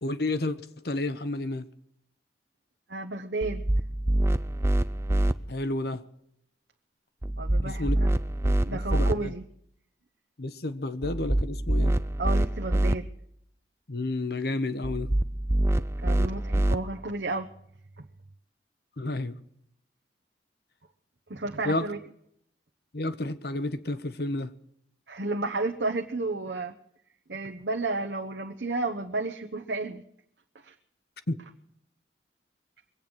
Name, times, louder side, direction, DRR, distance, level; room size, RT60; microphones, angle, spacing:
voice 1, 0.0-0.6 0.8-1.7 5.5-6.0 7.6-8.0 8.5-9.3 10.4-12.0 13.9-15.1 19.0-19.4 21.6-21.9 22.9-24.5 31.3-31.4, left 2 dB, 60° left, 12 dB, 1.0 m, -31 dB
voice 2, 2.9-3.6 7.4-8.1 8.6-9.4 12.2-13.1 16.0-17.5 21.3-22.0 25.1-26.7 27.3-30.0 30.6-30.7, right 2 dB, 65° right, 3 dB, 1.0 m, -32 dB
sound 1, 3.4-5.3 7.2-9.1 11.0-12.9 14.8-16.8, right 1 dB, 15° right, 0.5 m, -25 dB
23.0 x 8.9 x 6.3 m, 0.72 s
head